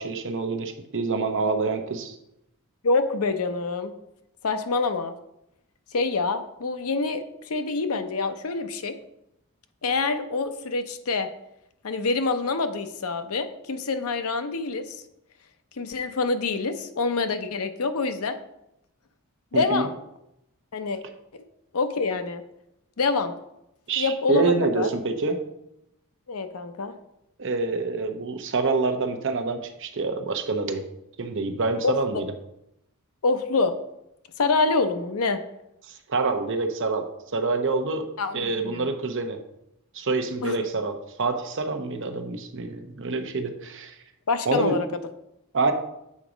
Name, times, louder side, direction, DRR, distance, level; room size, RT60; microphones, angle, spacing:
voice 1, 0.0-2.2 19.5-19.9 23.9-25.4 27.4-30.8 31.2-32.3 36.1-37.1 37.3-38.1 38.3-39.4 39.9-43.9 44.5-44.8 45.5-45.7, right 3 dB, 55° right, 6 dB, 0.8 m, -26 dB
voice 2, 2.8-3.9 4.4-5.1 5.9-8.9 9.8-11.3 11.8-14.8 15.8-18.4 19.5-19.9 20.7-21.0 21.7-22.4 23.0-23.3 24.0-24.9 26.3-26.9 31.8-31.9 33.2-33.7 34.4-35.4 38.2-38.9 40.4-40.6 44.3-44.9, left 4 dB, 75° left, 9 dB, 0.7 m, -26 dB
7.4 x 4.0 x 5.0 m, 0.82 s
head